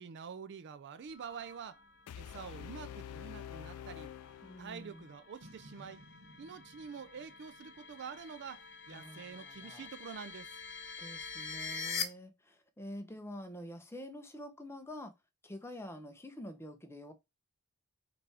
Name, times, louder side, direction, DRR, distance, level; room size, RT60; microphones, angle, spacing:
voice 1, 0.0-1.8 2.2-4.1 4.6-6.0 6.4-10.5, right 6 dB, 50° right, 0.4 m, -47 dB
sound 1, 1.1-12.0, left 6 dB, 55° left, 1.0 m, -46 dB
sound 2, 2.1-5.1, left 9 dB, 80° left, 0.3 m, -47 dB
voice 2, 4.4-5.1 8.9-9.8 11.0-15.1 15.4-17.1, left 1 dB, 10° left, 0.8 m, -47 dB
Boom, 5.4-8.7, right 1 dB, 70° right, 1.2 m, -58 dB
5.9 x 3.3 x 4.8 m
head